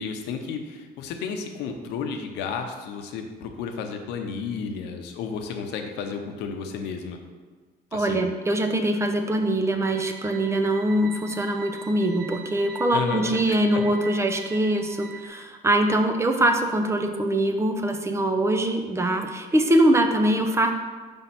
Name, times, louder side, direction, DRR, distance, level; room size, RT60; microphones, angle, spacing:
voice 1, 0.0-7.2 7.9-8.2 12.9-13.8, left 5 dB, 90° left, 5 dB, 0.7 m, -32 dB
voice 2, 7.9-20.7, right 1 dB, 15° right, 5 dB, 0.6 m, -23 dB
sound 1, 9.8-15.3, right 5 dB, 85° right, 0.7 m, -42 dB
5.4 x 3.6 x 5.8 m, 1.4 s
cardioid pair, 110°, 17 cm